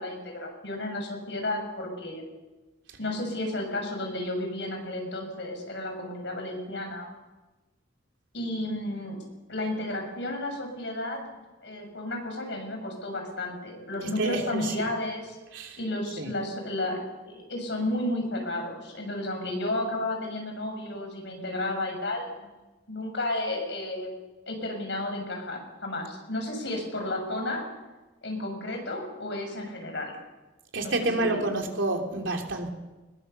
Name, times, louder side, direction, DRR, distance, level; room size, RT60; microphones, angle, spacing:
voice 1, 0.0-2.2 3.0-7.1 8.3-9.2 9.5-11.2 11.6-15.4 15.8-17.0 17.3-22.5 22.9-24.1 24.5-27.6 28.2-30.2 30.8-31.5, left 1 dB, 65° left, 3 dB, 6.0 m, -32 dB
voice 2, 14.0-14.9 15.5-15.8 16.2-16.3 30.7-32.7, right 2 dB, 80° right, 2 dB, 3.1 m, -29 dB
21.0 x 20.5 x 6.9 m, 1.1 s
head